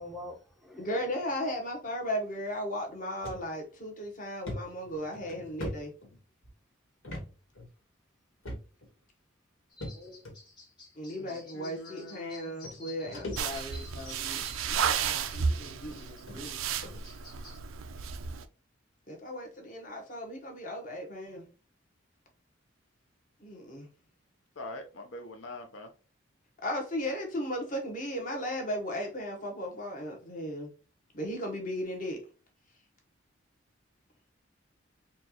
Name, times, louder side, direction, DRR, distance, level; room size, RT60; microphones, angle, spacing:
voice 1, 0.0-0.9 9.9-10.2 13.9-14.1 15.7-15.9 16.4-16.9, left 1 dB, ahead, 0.5 m, -47 dB
voice 2, 0.8-5.9 11.0-16.6 19.1-21.5 23.4-23.9 26.6-30.7 31.1-32.2, equal, 40° left, 1.1 m, -36 dB
sound 1, 3.2-3.4 3.9-4.0 4.5-6.5 7.0-7.3 7.5-7.7 8.4-8.9 9.8-10.3 11.2-11.3 12.3-12.4 12.6-13.8 14.2-14.5 15.3-15.4 15.9-16.0 16.3-16.4 16.8-17.0, left 1 dB, 90° left, 1.5 m, -40 dB
sound 2, 9.7-17.6, left 2 dB, 20° left, 1.2 m, -51 dB
voice 3, 11.2-13.7 14.8-15.2 16.0-16.1 16.6-16.7 24.6-25.9, left 2 dB, 70° left, 0.7 m, -46 dB
sound 3, 13.4-18.4, right 6 dB, 90° right, 0.4 m, -33 dB
4.3 x 2.3 x 2.9 m
head